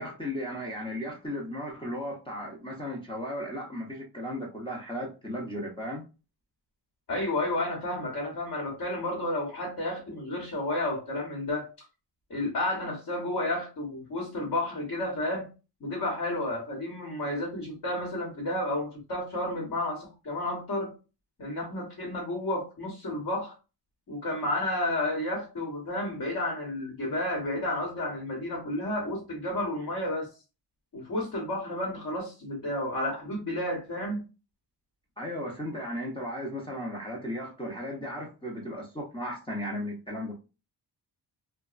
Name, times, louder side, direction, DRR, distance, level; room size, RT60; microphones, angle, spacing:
voice 1, 0.0-6.0 35.2-40.4, equal, 10° left, 0.6 m, -35 dB
voice 2, 7.1-11.7 12.3-15.5 15.8-20.9 21.4-23.5 24.1-30.3 30.9-34.2, left 1 dB, 50° left, 1.2 m, -31 dB
2.8 x 2.2 x 2.4 m
cardioid pair, 110°, 44 cm